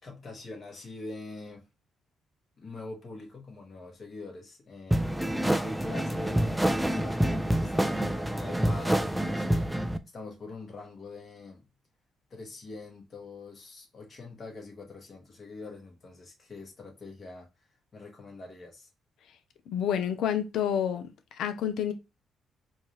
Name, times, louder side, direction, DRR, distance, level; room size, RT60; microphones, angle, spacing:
voice 1, 0.0-1.7 2.6-5.0 5.3-11.6 12.3-17.5 17.9-18.9, left 3 dB, 40° left, 2.0 m, -44 dB
sound 1, 4.9-10.0, right 1 dB, 5° right, 0.5 m, -27 dB
voice 2, 19.7-21.9, left 9 dB, 75° left, 0.8 m, -29 dB
4.3 x 2.9 x 3.3 m
cardioid pair, 90°, 0 cm